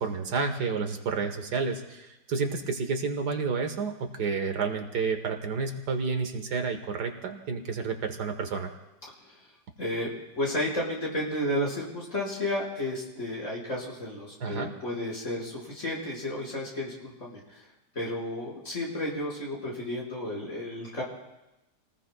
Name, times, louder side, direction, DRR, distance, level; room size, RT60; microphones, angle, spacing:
voice 1, 0.0-8.7 14.4-14.7, right 5 dB, 70° right, 6 dB, 1.8 m, -30 dB
voice 2, 9.8-17.7 17.9-21.0, left 1 dB, 45° left, -5 dB, 5.5 m, -32 dB
30.0 x 19.5 x 2.3 m, 0.95 s
omnidirectional pair, 1.8 m